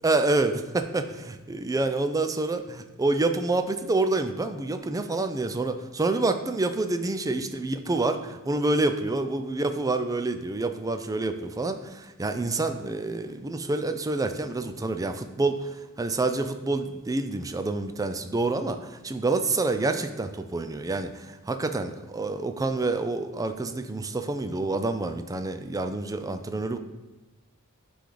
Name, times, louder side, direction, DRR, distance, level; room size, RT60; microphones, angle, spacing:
voice 1, 0.0-8.2 8.4-26.8, right 2 dB, 15° right, 8 dB, 0.4 m, -27 dB
9.9 x 3.4 x 3.9 m, 1.1 s
head